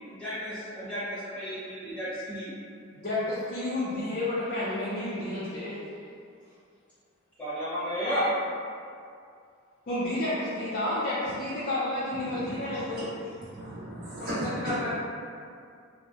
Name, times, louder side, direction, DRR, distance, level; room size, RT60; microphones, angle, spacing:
voice 1, 0.1-2.5 7.4-8.3, equal, 5° left, -13 dB, 0.8 m, -33 dB
voice 2, 3.0-5.8 9.9-13.1 14.2-14.9, left 1 dB, 45° left, -10 dB, 0.4 m, -31 dB
voice 3, 12.1-13.0 13.4-14.4 14.6-14.8, right 1 dB, 45° right, -12 dB, 0.5 m, -38 dB
2.6 x 2.0 x 2.4 m, 2.3 s
head